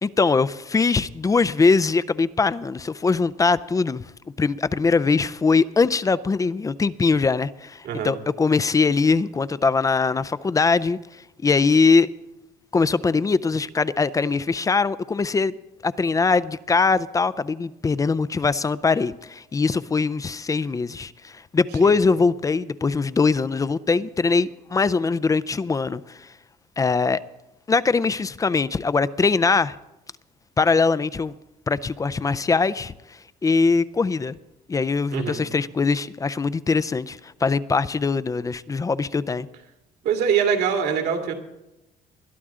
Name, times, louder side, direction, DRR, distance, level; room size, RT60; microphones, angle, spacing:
voice 1, 0.0-4.0 4.4-11.0 11.4-12.1 12.7-15.5 15.8-26.3 26.8-27.2 27.7-29.7 30.6-31.3 31.7-32.9 33.4-34.4 34.7-39.5, left 4 dB, 20° left, 0.4 m, -21 dB
voice 2, 7.8-8.2 21.8-21.9 35.1-35.4 40.0-41.3, right 7 dB, 75° right, 2.4 m, -23 dB
21.0 x 11.5 x 3.7 m
cardioid pair, 110°, 17 cm